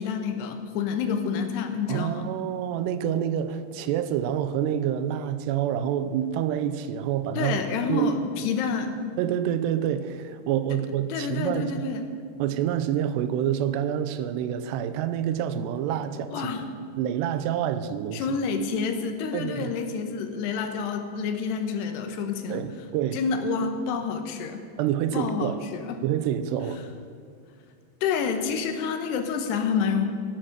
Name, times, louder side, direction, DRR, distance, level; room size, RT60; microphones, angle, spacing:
voice 1, 0.0-2.3 7.4-8.9 10.7-10.8 11.1-12.1 16.3-16.7 18.1-22.6 23.1-24.6 25.1-26.0 28.0-30.1, left 6 dB, 85° left, 6 dB, 3.3 m, -28 dB
voice 2, 1.9-7.6 7.9-8.1 9.2-11.9 12.4-16.5 17.0-18.2 19.3-19.7 22.5-23.2 24.8-25.6 26.0-26.8, right 10 dB, 90° right, 12 dB, 2.9 m, -27 dB
14.5 x 12.0 x 6.6 m, 2.2 s
omnidirectional pair, 4.7 m